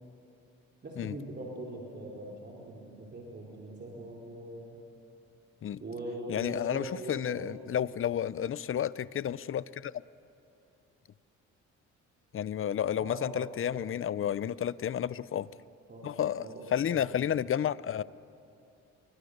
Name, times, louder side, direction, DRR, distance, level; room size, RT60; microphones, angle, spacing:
voice 1, 0.8-4.8 5.8-7.9 13.0-13.9 15.9-17.3, right 1 dB, 35° right, -3 dB, 3.8 m, -42 dB
voice 2, 6.3-9.9 12.3-15.5 16.0-18.0, left 9 dB, 45° left, 18 dB, 0.6 m, -31 dB
28.0 x 23.5 x 6.6 m, 2.6 s
cardioid pair, 90°, 30 cm